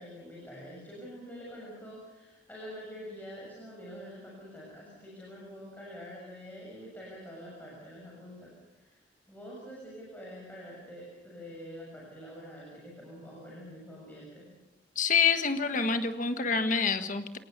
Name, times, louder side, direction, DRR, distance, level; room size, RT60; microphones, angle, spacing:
voice 1, 0.0-9.0 9.3-14.5, equal, 10° left, -4 dB, 7.0 m, -46 dB
voice 2, 14.9-17.4, left 5 dB, 45° left, 8 dB, 1.6 m, -27 dB
28.5 x 18.5 x 6.7 m, 0.95 s
head